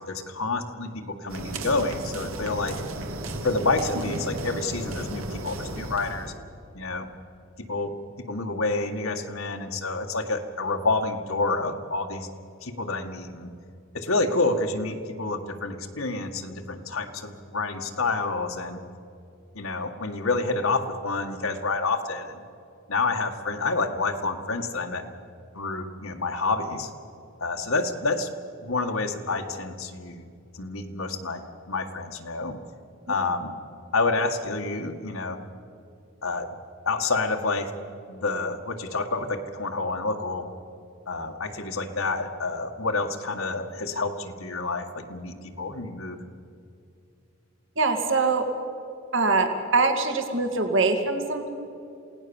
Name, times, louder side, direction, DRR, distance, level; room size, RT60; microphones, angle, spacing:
voice 1, 0.0-2.8 3.4-6.3 6.7-7.1 7.6-7.9 8.2-12.3 12.6-13.5 13.9-18.8 19.5-22.4 22.9-25.0 25.6-26.9 27.4-28.3 28.6-30.2 30.5-32.6 33.1-33.6 33.9-35.4 36.2-36.5 36.9-37.7 38.1-40.5 41.1-46.2, left 3 dB, 75° left, 4 dB, 2.0 m, -28 dB
sound 1, 1.3-6.4, right 1 dB, 80° right, 2.3 m, -34 dB
voice 2, 47.8-48.4 49.1-51.5, right 3 dB, 60° right, 5 dB, 2.2 m, -23 dB
28.0 x 18.0 x 7.2 m, 2.6 s
head